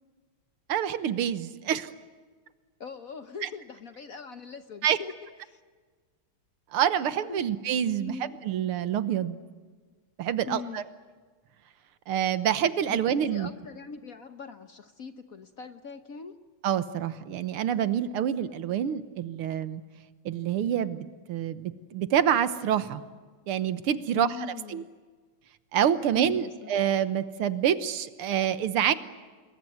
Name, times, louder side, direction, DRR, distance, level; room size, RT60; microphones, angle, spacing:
voice 1, 0.7-1.9 3.4-3.5 4.8-5.0 6.7-8.1 8.5-9.4 10.2-10.8 12.1-13.5 16.6-19.8 20.3-23.0 23.5-24.3 24.7-24.8 25.7-28.9, right 9 dB, 80° right, 13 dB, 2.0 m, -27 dB
voice 2, 2.8-5.1 5.4-5.6 7.3-7.4 8.0-8.4 10.5-10.8 12.9-16.3 24.2-24.9 26.1-26.7, left 6 dB, 50° left, 9 dB, 1.1 m, -41 dB
27.0 x 22.0 x 9.4 m, 1.4 s
omnidirectional pair, 2.4 m